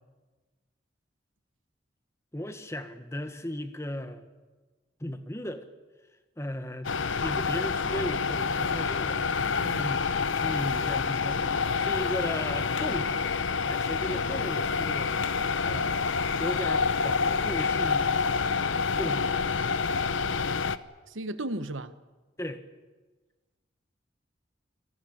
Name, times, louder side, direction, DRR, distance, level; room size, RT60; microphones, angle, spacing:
voice 1, 2.3-4.3 5.0-5.6 6.4-6.9 7.2-9.3 9.8-13.1 13.6-15.1 15.7-16.1 16.4-19.2 22.4-22.6, left 1 dB, 15° left, 9 dB, 1.5 m, -36 dB
sound 1, 6.8-20.8, left 5 dB, 85° left, 0.9 m, -28 dB
voice 2, 9.6-10.0 15.7-15.9 21.1-21.9, right 1 dB, 85° right, 12 dB, 1.3 m, -36 dB
28.5 x 18.0 x 8.7 m, 1.3 s
head